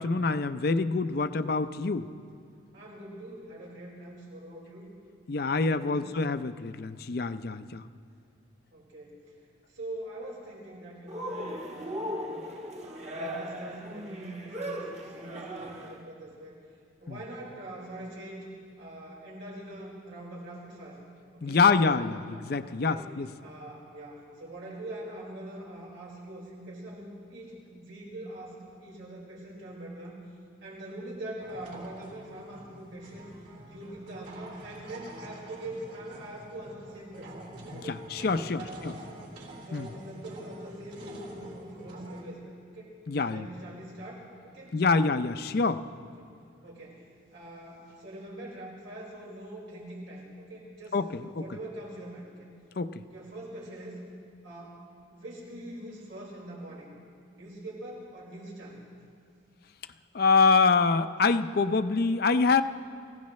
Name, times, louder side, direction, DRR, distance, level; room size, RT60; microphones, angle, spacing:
voice 1, 0.0-2.1 5.3-7.8 17.1-17.2 21.4-23.3 37.7-38.9 39.7-39.9 43.1-43.5 44.7-45.8 50.9-51.1 51.4-51.5 52.8-53.0 60.1-62.6, left 4 dB, 50° left, 11 dB, 0.5 m, -25 dB
voice 2, 2.7-4.9 5.5-6.1 8.7-9.3 9.7-12.4 12.8-16.6 17.0-18.5 18.8-21.0 21.3-23.1 23.4-30.2 30.6-33.3 33.6-37.4 37.7-39.2 39.6-42.9 43.2-45.0 46.2-46.3 46.6-47.0 47.3-52.5 53.1-54.0 54.4-54.8 55.1-56.9 57.3-58.8, right 1 dB, 85° right, -4 dB, 4.9 m, -43 dB
Cheering, 11.1-16.0, equal, 35° right, 1.2 m, -37 dB
sound 1, 31.4-42.2, right 1 dB, 65° right, 3.8 m, -47 dB
28.5 x 16.0 x 3.2 m, 2.2 s
head